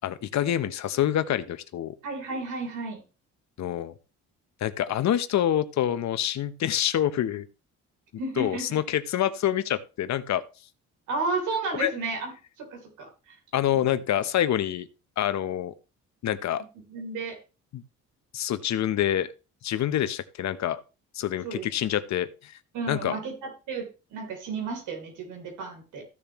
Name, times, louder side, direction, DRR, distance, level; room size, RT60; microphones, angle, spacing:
voice 1, 0.0-1.9 3.6-3.9 4.6-7.5 8.4-10.4 11.8-11.9 13.5-14.9 15.2-15.7 16.2-16.6 17.7-17.8 18.3-19.3 19.6-20.8 21.1-22.5 22.9-23.2, left 11 dB, 65° left, 13 dB, 0.8 m, -26 dB
voice 2, 2.0-3.0 8.2-8.8 11.1-12.3 12.6-13.3 13.7-13.8 16.3-16.4 16.9-17.4 21.4-21.7 22.7-26.0, right 3 dB, 85° right, 2 dB, 3.3 m, -33 dB
14.5 x 6.9 x 3.0 m, 0.31 s
cardioid pair, 90°, 30 cm